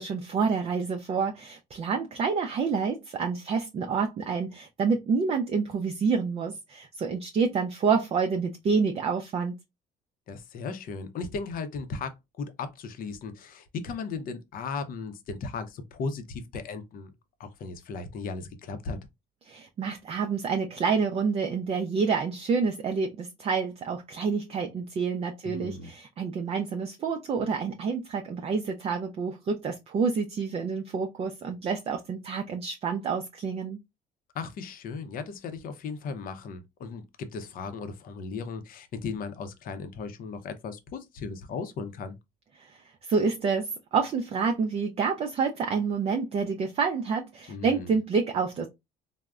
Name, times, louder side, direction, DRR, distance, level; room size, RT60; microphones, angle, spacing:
voice 1, 0.0-9.6 19.5-33.8 42.6-48.7, right 5 dB, 35° right, 0.4 m, -28 dB
voice 2, 10.3-17.1 17.4-19.0 25.5-25.9 34.3-42.1 47.5-47.9, left 4 dB, 55° left, 0.6 m, -36 dB
3.4 x 2.0 x 2.3 m
cardioid pair, 110°, 17 cm